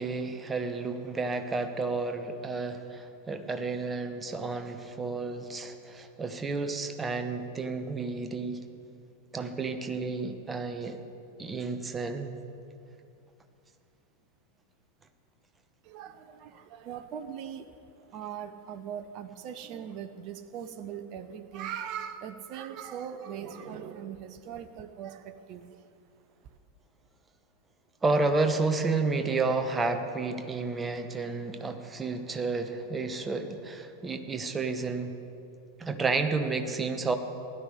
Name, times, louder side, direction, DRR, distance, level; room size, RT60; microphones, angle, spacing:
voice 1, 0.0-8.6 9.3-11.0 11.4-12.4 28.0-35.2 35.8-37.2, right 3 dB, 15° right, 7 dB, 1.1 m, -31 dB
voice 2, 15.8-25.9, right 8 dB, 40° right, 10 dB, 0.7 m, -40 dB
17.0 x 11.5 x 5.0 m, 2.6 s
figure-of-eight pair, 90°, 0 cm